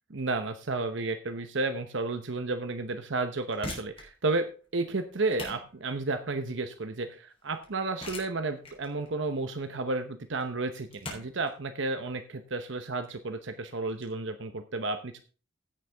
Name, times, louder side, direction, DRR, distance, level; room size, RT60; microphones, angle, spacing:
voice 1, 0.1-15.2, right 3 dB, 70° right, 8 dB, 0.9 m, -32 dB
sound 1, 3.3-14.1, left 2 dB, 30° left, 3.6 m, -46 dB
16.0 x 6.7 x 3.5 m, 0.37 s
head